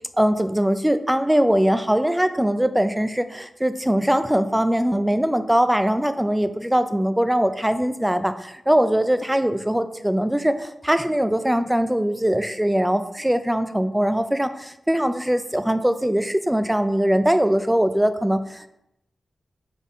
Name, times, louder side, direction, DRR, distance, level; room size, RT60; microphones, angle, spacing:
voice 1, 0.2-18.7, equal, 5° right, 10 dB, 0.4 m, -21 dB
4.7 x 4.2 x 5.4 m, 0.81 s
wide cardioid pair, 90°, 0 cm